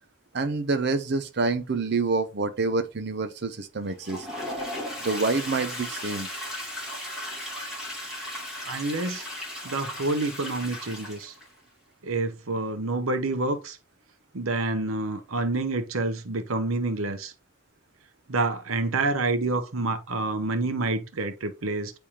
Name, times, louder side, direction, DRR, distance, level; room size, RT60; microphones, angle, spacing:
voice 1, 0.3-4.3 5.0-6.3, right 3 dB, 50° right, 0.6 m, -27 dB
Toilet flush, 3.9-11.5, left 1 dB, ahead, 2.7 m, -36 dB
voice 2, 8.6-9.2 9.6-11.3 12.0-13.8 14.3-17.3 18.3-21.9, right 2 dB, 90° right, 0.9 m, -28 dB
9.9 x 3.4 x 2.9 m
head